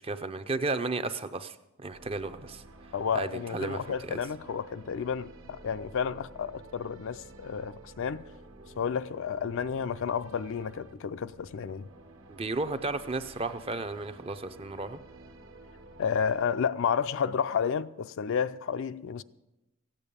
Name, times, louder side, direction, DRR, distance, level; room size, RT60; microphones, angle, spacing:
voice 1, 0.0-1.6 1.8-2.6 3.1-4.2 12.3-15.0, right 3 dB, 25° right, 0.5 m, -33 dB
sound 1, 1.9-16.4, right 2 dB, 65° right, 1.4 m, -51 dB
voice 2, 2.9-8.2 8.8-11.9 16.0-19.2, left 7 dB, 60° left, 0.4 m, -31 dB
15.0 x 8.9 x 6.8 m
head